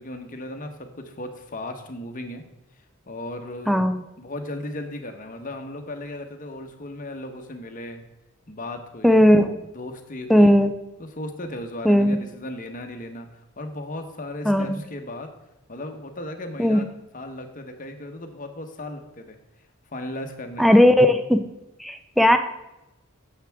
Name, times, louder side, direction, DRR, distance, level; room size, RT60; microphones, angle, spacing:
voice 1, 0.0-2.4 3.1-3.8 4.2-8.0 8.5-9.2 9.7-10.5 11.0-13.3 13.6-15.3 15.7-16.9 17.1-19.4 19.9-20.8, left 1 dB, 35° left, 5 dB, 1.0 m, -36 dB
voice 2, 3.7-4.0 9.0-9.6 10.3-10.7 11.8-12.2 14.5-14.8 16.6-16.8 20.6-21.4 21.8-22.4, equal, ahead, 7 dB, 0.5 m, -17 dB
10.5 x 7.5 x 3.5 m, 0.96 s
head